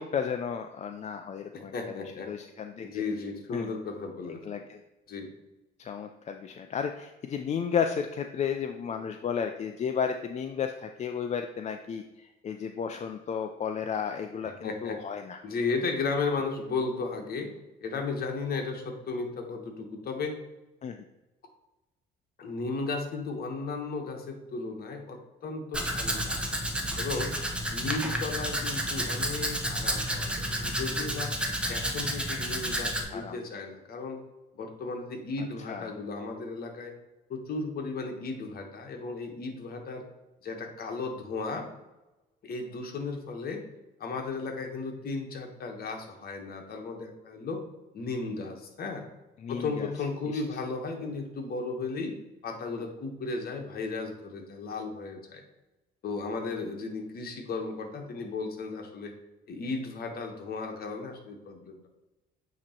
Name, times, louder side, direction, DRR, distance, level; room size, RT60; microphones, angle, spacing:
voice 1, 0.0-1.7 2.3-3.0 3.5-3.8 4.4-4.8 5.8-15.4 20.8-21.0 33.1-33.4 35.4-35.9 49.4-49.9 50.3-50.4, left 7 dB, 40° left, 6 dB, 0.4 m, -33 dB
voice 2, 1.5-2.3 2.8-4.4 5.1-5.3 14.4-15.0 15.4-17.5 17.8-20.4 22.4-26.4 27.0-27.3 27.7-31.3 31.7-34.2 34.5-36.9 37.3-40.0 40.4-41.7 42.4-43.6 44.0-47.6 47.9-49.0 49.5-52.2 52.4-55.4 56.0-59.1 59.5-61.8, left 4 dB, 55° left, 4 dB, 1.3 m, -35 dB
Domestic sounds home sounds, 25.7-33.0, equal, 5° right, 1.0 m, -31 dB
8.5 x 3.0 x 4.4 m, 1.0 s
cardioid pair, 95°, 19 cm